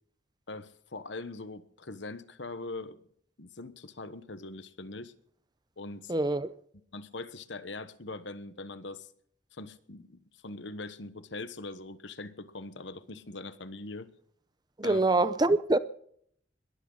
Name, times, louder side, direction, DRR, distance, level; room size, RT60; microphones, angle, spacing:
voice 1, 0.5-3.0 3.4-5.1 5.8-6.1 6.9-9.1 9.5-14.1 14.8-15.0, left 3 dB, 70° left, 1.2 m, -42 dB
voice 2, 6.1-6.5 14.8-15.8, right 2 dB, 20° right, 0.7 m, -25 dB
21.5 x 15.0 x 4.0 m
head